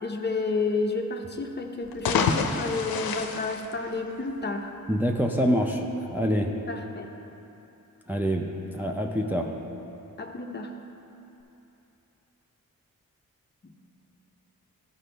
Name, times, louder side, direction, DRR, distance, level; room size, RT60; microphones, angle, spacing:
voice 1, 0.0-4.7 6.7-7.1 10.2-10.7 13.6-13.7, left 3 dB, 30° left, 3 dB, 0.7 m, -31 dB
sound 1, 1.8-4.4, left 5 dB, 90° left, 0.6 m, -28 dB
voice 2, 4.9-6.5 8.1-9.5, equal, 5° right, 1 dB, 0.4 m, -26 dB
13.0 x 5.2 x 3.3 m, 2.9 s
wide cardioid pair, 100°, 35 cm